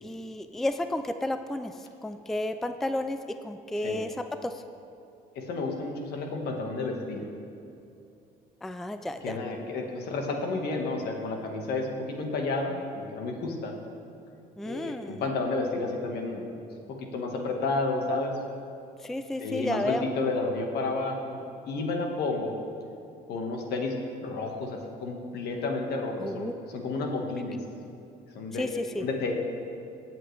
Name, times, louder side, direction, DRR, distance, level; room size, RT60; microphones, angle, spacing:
voice 1, 0.0-1.7 2.0-3.2 3.4-4.1 4.4-4.5 8.6-9.4 14.6-15.2 19.0-20.0 26.2-26.5 28.6-29.0, left 1 dB, ahead, 9 dB, 0.3 m, -32 dB
voice 2, 5.3-7.2 9.2-12.8 13.1-13.7 14.6-16.4 17.1-18.4 19.4-22.5 23.3-23.9 24.2-27.6 28.3-28.6 29.0-29.3, left 3 dB, 70° left, 2 dB, 1.6 m, -31 dB
18.0 x 7.8 x 3.3 m, 2.7 s
cardioid pair, 110°, 17 cm